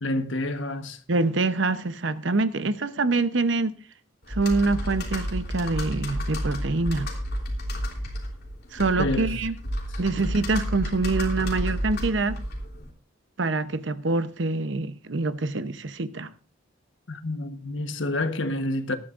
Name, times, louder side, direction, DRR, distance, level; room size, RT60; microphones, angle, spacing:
voice 1, 0.0-1.0 9.0-9.3 17.1-19.0, left 2 dB, 75° left, 1.3 m, -28 dB
voice 2, 1.1-3.7 4.3-7.1 8.7-9.5 10.0-12.4 13.4-16.3, right 3 dB, 70° right, 0.9 m, -25 dB
Computer keyboard, 4.3-12.9, equal, 55° left, 3.4 m, -31 dB
18.5 x 12.0 x 2.6 m
head